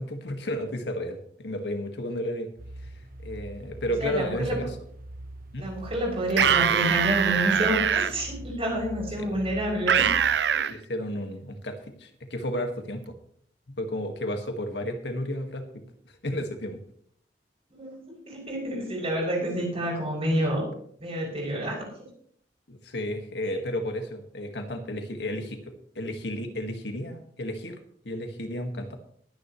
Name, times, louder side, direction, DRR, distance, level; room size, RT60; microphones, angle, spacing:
voice 1, 0.0-2.5 2.8-2.9 3.2-4.8 5.5-5.7 9.2-9.4 10.7-13.2 13.7-15.8 16.2-16.8 22.7-27.8 28.1-29.0, left 1 dB, 70° left, 5 dB, 1.8 m, -32 dB
sound 1, 2.6-10.4, right 1 dB, 55° right, 1.1 m, -42 dB
voice 2, 4.0-4.6 5.6-10.1 10.5-10.6 17.7-20.7 21.0-22.1, right 1 dB, 35° right, -1 dB, 6.8 m, -29 dB
sound 2, 6.3-8.1 9.9-10.7, right 8 dB, 70° right, 0.5 m, -22 dB
22.0 x 9.8 x 3.2 m, 0.63 s
head